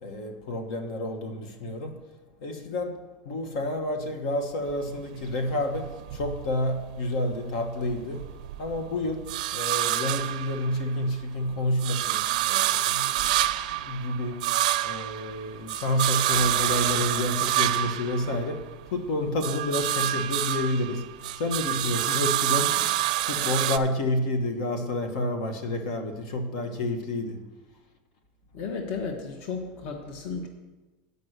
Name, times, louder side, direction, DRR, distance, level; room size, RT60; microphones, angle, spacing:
voice 1, 0.0-2.0 2.4-8.3 8.6-14.5 14.8-22.9 23.2-27.5, left 1 dB, 65° left, 1.3 m, -29 dB
sound 1, 4.7-7.1 7.4-11.1 11.5-18.9 19.2-23.8, right 14 dB, 70° right, 0.5 m, -28 dB
voice 2, 28.5-30.5, left 5 dB, 45° left, 1.1 m, -34 dB
9.5 x 5.3 x 8.0 m
supercardioid pair, 170°, 4 cm